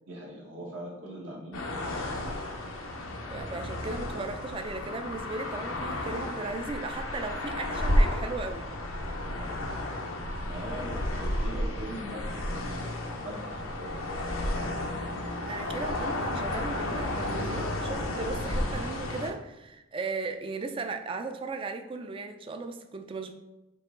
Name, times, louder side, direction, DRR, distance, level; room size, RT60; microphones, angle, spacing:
voice 1, 0.1-2.0 9.2-9.5 10.5-12.4 13.1-14.1, equal, 70° right, -3 dB, 1.1 m, -41 dB
sound 1, 1.5-19.3, left 1 dB, 90° left, 0.7 m, -32 dB
voice 2, 3.3-8.7 15.5-23.3, right 3 dB, 25° right, 6 dB, 0.3 m, -37 dB
4.7 x 2.9 x 3.6 m, 0.99 s
head